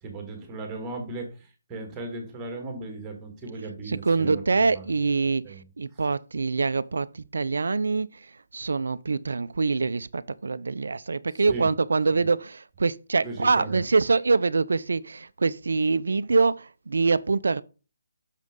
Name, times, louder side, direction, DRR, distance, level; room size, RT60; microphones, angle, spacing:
voice 1, 0.0-4.9 5.4-5.7 5.9-6.0 11.3-11.7 12.1-12.3 13.2-13.8, right 3 dB, 15° right, 1.9 m, -37 dB
voice 2, 3.9-17.6, right 4 dB, 65° right, 0.4 m, -25 dB
6.4 x 5.2 x 3.8 m
figure-of-eight pair, 145°, 0 cm